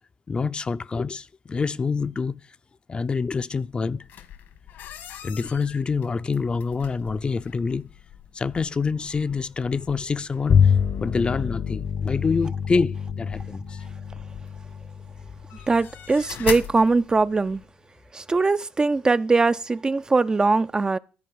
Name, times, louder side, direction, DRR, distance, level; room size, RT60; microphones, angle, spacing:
voice 1, 0.3-2.4 2.9-4.1 5.2-7.9 8.3-10.7 11.0-13.8, left 4 dB, 30° left, 0.5 m, -26 dB
sound 1, 4.0-17.6, left 9 dB, 75° left, 1.6 m, -42 dB
Bowed string instrument, 10.5-16.1, left 7 dB, 55° left, 0.9 m, -25 dB
voice 2, 15.7-17.6 18.1-21.0, right 3 dB, 20° right, 0.4 m, -21 dB
13.0 x 4.5 x 7.7 m
cardioid pair, 90°, 3 cm